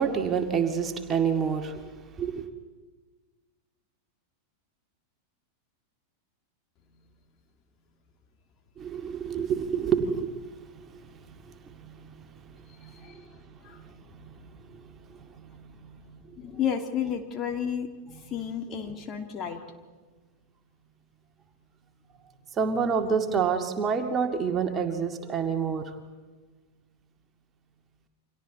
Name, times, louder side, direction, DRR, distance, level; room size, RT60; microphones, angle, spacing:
voice 1, 0.0-1.9 2.2-2.5 8.8-13.3 13.7-16.6 22.5-25.9, right 6 dB, 25° right, 5 dB, 2.2 m, -29 dB
voice 2, 12.8-13.2 13.6-13.8 16.4-17.9 18.3-19.6, left 8 dB, 30° left, 4 dB, 2.7 m, -32 dB
29.5 x 25.5 x 4.1 m, 1.3 s
figure-of-eight pair, 90°, 0 cm